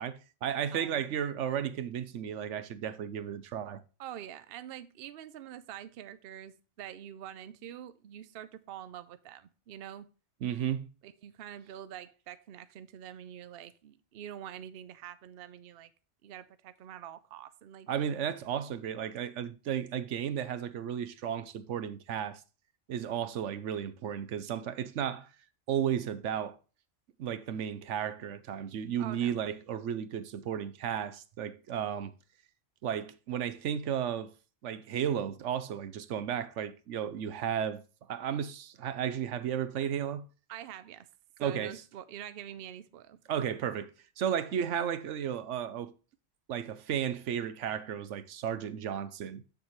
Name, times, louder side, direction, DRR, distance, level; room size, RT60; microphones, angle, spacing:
voice 1, 0.0-3.8 10.4-10.9 17.9-22.4 22.9-25.3 25.7-26.6 27.2-32.1 32.8-34.3 34.6-37.8 38.1-40.2 41.4-41.7 43.3-43.9 44.2-45.9 46.5-49.4, right 9 dB, 80° right, 1.0 m, -34 dB
voice 2, 0.7-1.0 4.0-10.1 11.0-15.9 16.2-17.9 29.0-29.4 40.5-41.1 41.4-43.2, right 10 dB, 60° right, 0.8 m, -45 dB
7.6 x 6.9 x 3.0 m
omnidirectional pair, 1.2 m